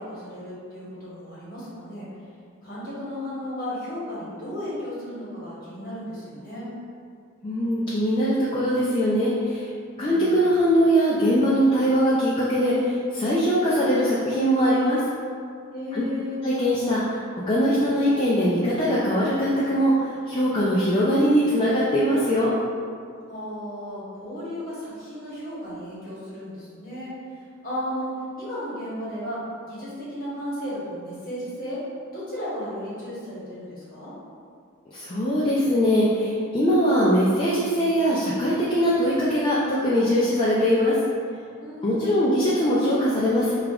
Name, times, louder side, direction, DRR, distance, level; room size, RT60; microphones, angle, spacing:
voice 1, 0.0-2.1 2.6-6.7 9.9-10.4 15.7-16.4 23.3-27.1 27.6-28.1 28.4-29.4 29.6-31.8 32.1-34.1 41.6-42.3, left 1 dB, 40° left, -9 dB, 1.1 m, -34 dB
voice 2, 7.4-9.7 10.0-15.0 15.9-16.0 16.4-17.2 17.5-22.5 34.9-41.0 41.8-43.5, equal, 25° left, -8 dB, 0.3 m, -21 dB
5.0 x 2.4 x 2.3 m, 2.3 s
head